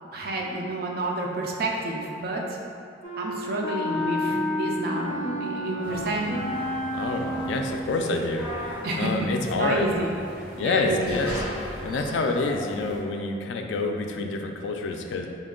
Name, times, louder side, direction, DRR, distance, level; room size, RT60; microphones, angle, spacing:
voice 1, 0.1-2.6 3.2-6.3 8.8-9.1 9.5-10.1 10.6-11.2, right 2 dB, 55° right, -1 dB, 0.4 m, -29 dB
Wind instrument woodwind instrument, 3.0-7.9, left 1 dB, 45° left, 0.6 m, -30 dB
sound 1, 3.8-8.8, right 1 dB, 5° right, 0.9 m, -39 dB
sound 2, 5.8-13.0, equal, 25° left, 1.0 m, -38 dB
voice 2, 6.9-9.9 10.6-11.4 11.8-15.3, left 3 dB, 85° left, 4 dB, 0.3 m, -27 dB
4.0 x 2.2 x 3.7 m, 2.5 s
head